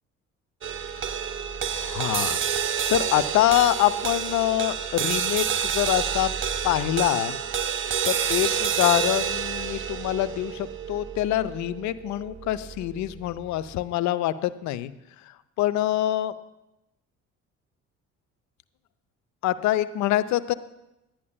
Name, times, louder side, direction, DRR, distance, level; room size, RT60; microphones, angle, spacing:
sound 1, 0.6-13.1, right 8 dB, 30° right, 0.8 m, -28 dB
voice 1, 1.8-2.4 2.9-6.3 6.6-7.4 8.0-14.9 15.6-16.3 19.4-20.5, left 14 dB, 45° left, 16 dB, 0.6 m, -25 dB
19.0 x 10.0 x 2.2 m, 0.92 s
figure-of-eight pair, 50°, 40 cm